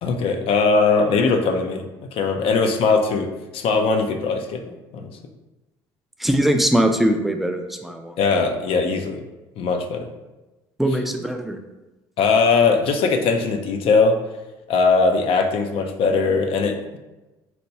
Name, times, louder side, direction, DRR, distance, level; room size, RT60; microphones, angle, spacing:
voice 1, 0.0-1.9 2.1-5.1 8.2-9.2 9.6-10.1 12.2-14.2 14.7-17.0, left 4 dB, 65° left, 5 dB, 0.5 m, -20 dB
voice 2, 6.2-8.2 10.8-11.6, right 1 dB, ahead, 5 dB, 0.4 m, -21 dB
4.2 x 2.2 x 2.7 m, 1.1 s
supercardioid pair, 80°, 10 cm